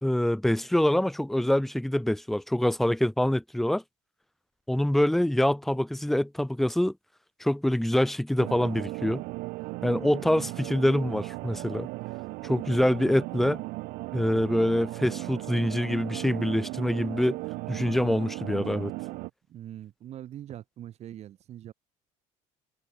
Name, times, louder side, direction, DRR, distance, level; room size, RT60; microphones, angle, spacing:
voice 1, 0.0-3.8 4.7-6.9 7.4-9.2 9.8-11.9 12.4-13.6 14.1-17.4 17.7-18.9, left 1 dB, ahead, 0.5 m, -25 dB
sound 1, 8.4-19.3, right 23 dB, 80° right, 2.9 m, -36 dB
voice 2, 19.5-21.7, right 11 dB, 50° right, 1.5 m, -43 dB
cardioid pair, 125°, 15 cm